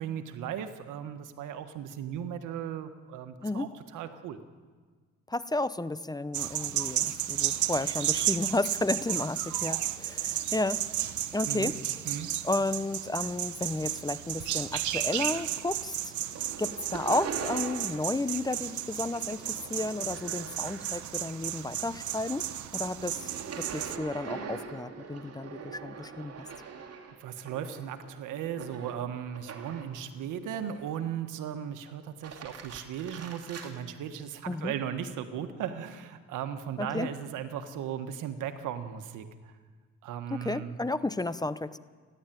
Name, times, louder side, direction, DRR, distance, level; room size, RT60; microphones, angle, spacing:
voice 1, 0.0-4.4 11.4-11.7 12.0-12.3 27.2-39.5 40.0-40.8, right 9 dB, 90° right, 9 dB, 1.5 m, -37 dB
voice 2, 5.3-10.8 11.3-11.8 12.4-16.1 16.6-23.3 23.6-26.4 34.5-34.7 36.8-37.1 40.3-41.8, left 2 dB, 15° left, 14 dB, 0.8 m, -32 dB
sound 1, 6.3-24.0, right 12 dB, 75° right, 1.0 m, -33 dB
sound 2, 15.3-15.9 16.2-18.2 18.5-21.3 21.7-30.0 30.5-31.2 32.0-33.7, right 5 dB, 55° right, 2.8 m, -43 dB
29.5 x 11.5 x 9.2 m, 1.5 s
cardioid pair, 90°, 30 cm